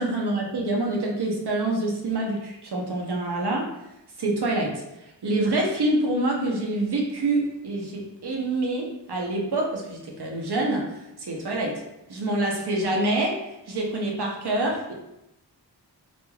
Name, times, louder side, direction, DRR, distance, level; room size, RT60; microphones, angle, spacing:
voice 1, 0.0-3.7 4.2-4.8 5.2-10.8 11.2-11.8 12.1-13.4 13.7-14.9, right 2 dB, 70° right, 0 dB, 0.7 m, -26 dB
3.1 x 2.5 x 2.3 m, 0.89 s
wide cardioid pair, 40°, 41 cm